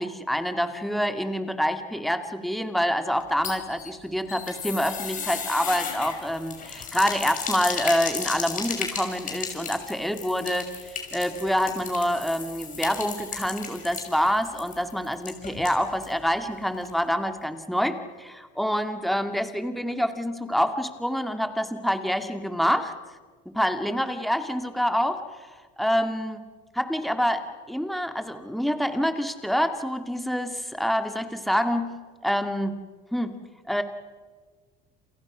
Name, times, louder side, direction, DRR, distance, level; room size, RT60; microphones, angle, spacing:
voice 1, 0.0-10.7 11.1-22.9 23.5-25.2 25.8-26.4 26.7-32.0 32.2-32.8 33.1-33.4 33.7-33.8, equal, ahead, 7 dB, 2.1 m, -26 dB
sound 1, 3.2-16.2 16.5-16.6 16.8-16.9, left 6 dB, 40° left, 6.2 m, -35 dB
29.0 x 28.0 x 6.1 m, 1.5 s
cardioid pair, 125°, 20 cm